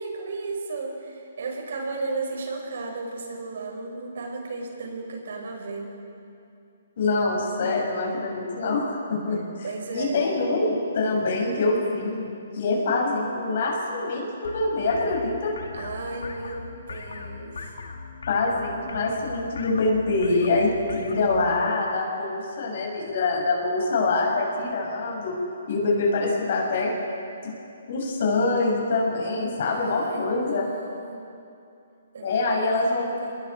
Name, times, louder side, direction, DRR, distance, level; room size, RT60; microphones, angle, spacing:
voice 1, 0.0-6.1 9.6-10.3 15.7-17.7 29.6-31.2 32.1-33.4, right 3 dB, 70° right, 1 dB, 6.1 m, -35 dB
voice 2, 7.0-9.4 9.9-15.5 18.3-25.4 25.7-26.9 27.4-27.5 27.9-30.7 32.2-33.1, left 3 dB, 55° left, -1 dB, 7.5 m, -25 dB
sound 1, 14.4-21.6, left 4 dB, 80° left, 2.2 m, -40 dB
28.0 x 20.5 x 5.0 m, 2.6 s
hypercardioid pair, 145°, 0 cm